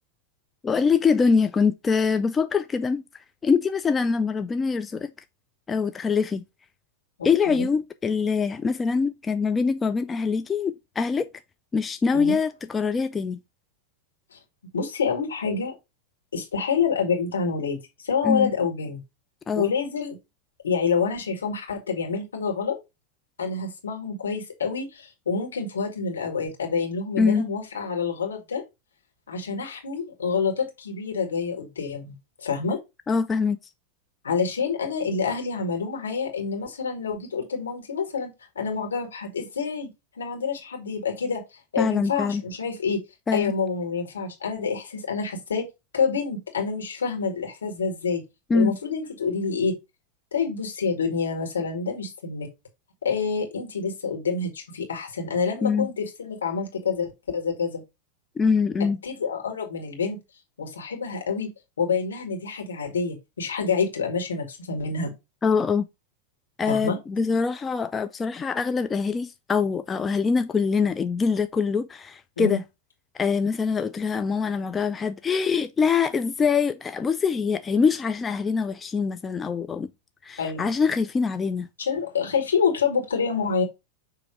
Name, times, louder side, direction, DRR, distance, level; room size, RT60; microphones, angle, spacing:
voice 1, 0.6-5.1 5.7-6.4 7.2-11.3 11.7-13.4 18.2-18.5 19.5-19.7 27.2-27.5 33.1-33.6 41.8-42.4 43.3-43.5 48.5-48.8 55.6-55.9 58.4-59.0 65.4-65.9 66.6-72.6 73.1-79.9 80.2-81.7, left 5 dB, 20° left, 0.4 m, -24 dB
voice 2, 7.2-7.7 12.1-12.4 14.3-14.4 14.7-15.7 16.3-19.0 19.6-20.2 20.6-22.8 23.4-28.6 29.3-32.8 34.2-39.9 40.2-41.4 41.7-43.0 43.3-45.6 45.9-48.2 48.5-49.7 50.3-52.5 53.0-57.8 59.0-60.2 60.6-61.5 61.8-65.1 66.7-67.0 72.4-72.6 80.4-80.7 81.8-83.6, left 5 dB, 70° left, 2.0 m, -27 dB
6.9 x 3.1 x 5.0 m
figure-of-eight pair, 90°, 0 cm